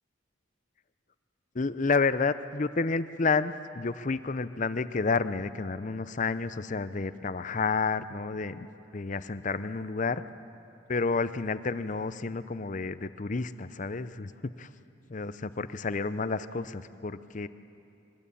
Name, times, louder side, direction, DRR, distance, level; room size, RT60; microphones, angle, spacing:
voice 1, 1.5-8.7 8.9-10.2 10.9-14.7 15.1-17.5, left 4 dB, 40° left, 13 dB, 0.6 m, -30 dB
23.0 x 19.5 x 8.5 m, 2.6 s
head